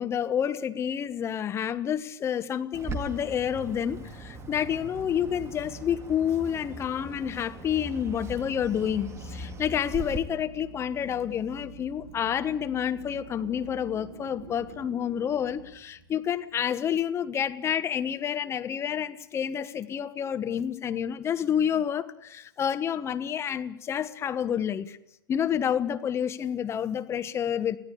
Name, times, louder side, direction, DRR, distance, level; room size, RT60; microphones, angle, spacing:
voice 1, 0.0-25.0 25.3-27.8, left 9 dB, 25° left, 1.3 m, -29 dB
Bird, 2.7-10.2, right 2 dB, 25° right, 2.0 m, -40 dB
Drill, 8.0-16.6, right 5 dB, 50° right, 4.0 m, -47 dB
24.5 x 15.5 x 8.4 m
figure-of-eight pair, 100°, 11 cm